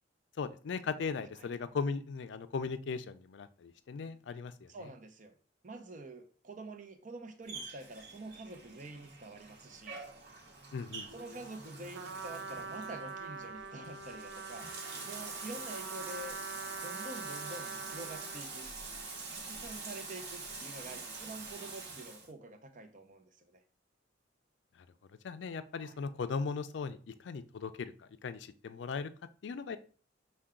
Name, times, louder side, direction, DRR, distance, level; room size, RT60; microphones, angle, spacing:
voice 1, 0.4-4.7 10.7-11.1 25.2-27.9 28.2-29.1 29.4-29.8, left 5 dB, 65° left, 12 dB, 0.4 m, -38 dB
voice 2, 4.7-5.3 5.6-10.0 11.1-14.7 15.0-16.4 16.8-18.7 19.3-23.6 25.8-26.0, right 2 dB, 45° right, 7 dB, 0.6 m, -47 dB
Bathtub (filling or washing), 7.4-22.3, right 3 dB, 60° right, 1.0 m, -45 dB
Trumpet, 11.9-18.6, right 4 dB, 85° right, 0.6 m, -44 dB
5.6 x 2.2 x 3.7 m, 0.41 s
head